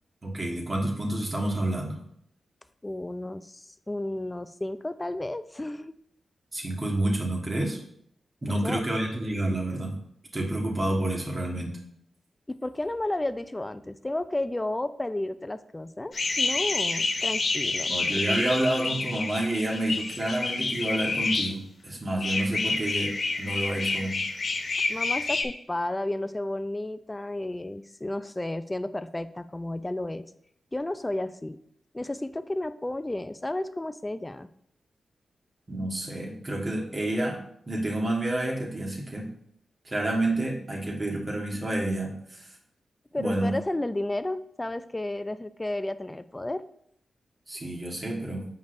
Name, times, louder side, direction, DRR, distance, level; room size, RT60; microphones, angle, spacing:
voice 1, 0.2-2.0 6.5-7.8 8.4-10.0 10.3-11.8 17.9-24.2 35.7-37.4 37.7-39.3 39.9-42.1 43.1-43.5 47.5-48.4, right 1 dB, 40° right, -1 dB, 1.6 m, -29 dB
voice 2, 2.8-5.9 8.5-8.8 12.5-17.9 24.9-30.2 30.7-31.6 31.9-34.5 43.1-46.6, left 1 dB, 20° left, 13 dB, 0.4 m, -32 dB
sound 1, 16.1-21.5 22.2-25.4, left 3 dB, 60° left, 0.7 m, -28 dB
7.8 x 5.2 x 2.6 m, 0.70 s
cardioid pair, 50°, 0 cm